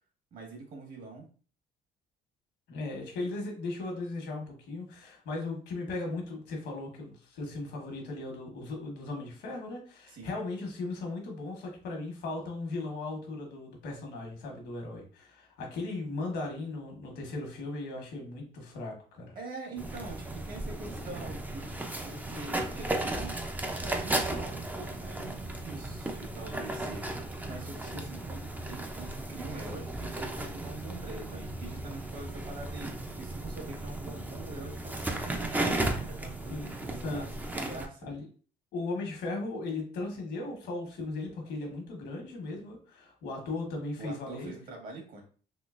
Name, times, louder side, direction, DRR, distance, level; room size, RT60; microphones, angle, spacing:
voice 1, 0.3-1.3 10.1-10.4 19.3-23.4 23.8-37.3 37.5-38.1 44.0-45.2, right 3 dB, 55° right, 1 dB, 1.5 m, -44 dB
voice 2, 2.7-19.3 27.8-28.0 36.5-37.2 38.0-38.2 38.7-44.5, left 2 dB, 80° left, 1 dB, 1.3 m, -37 dB
sound 1, 19.8-37.9, right 2 dB, 10° right, 0.5 m, -35 dB
3.8 x 2.8 x 2.5 m, 0.40 s
cardioid pair, 110°, 17 cm